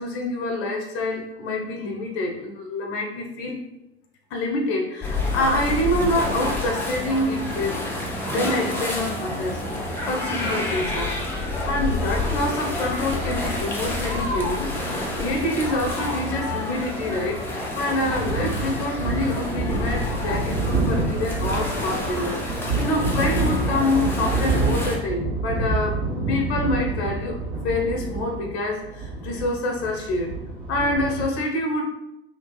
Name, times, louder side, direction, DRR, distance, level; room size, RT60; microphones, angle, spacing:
voice 1, 0.0-3.6 4.3-7.9 8.3-9.6 10.1-11.2 11.7-17.4 17.8-26.0 26.3-27.4 27.6-30.3 30.7-31.8, left 1 dB, 45° left, 1 dB, 0.8 m, -26 dB
sound 1, 5.0-25.0, left 1 dB, 5° left, 0.7 m, -28 dB
sound 2, 17.9-31.3, right 2 dB, 50° right, 1.4 m, -27 dB
3.2 x 2.8 x 3.2 m, 0.91 s
figure-of-eight pair, 80°, 33 cm